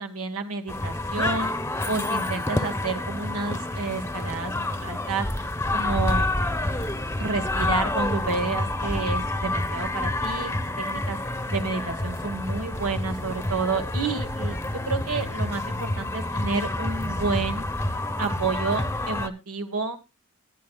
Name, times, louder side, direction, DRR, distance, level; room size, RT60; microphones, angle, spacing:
voice 1, 0.0-1.5 1.9-5.3 5.7-6.3 7.2-11.2 11.5-17.7 18.2-20.0, right 4 dB, 90° right, 6 dB, 1.4 m, -30 dB
sound 1, 0.7-19.3, left 1 dB, 10° left, 0.8 m, -28 dB
21.0 x 9.5 x 2.3 m, 0.25 s
head